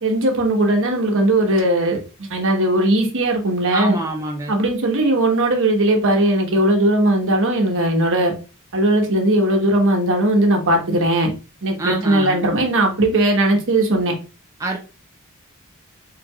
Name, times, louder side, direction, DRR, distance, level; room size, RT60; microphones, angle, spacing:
voice 1, 0.0-4.0 4.5-8.3 8.7-11.3 11.6-14.1, right 1 dB, 60° right, 2 dB, 1.1 m, -18 dB
voice 2, 3.7-4.5 11.8-12.4 14.6-14.8, right 2 dB, 15° right, 0 dB, 0.6 m, -25 dB
4.5 x 3.7 x 2.3 m, 0.32 s
head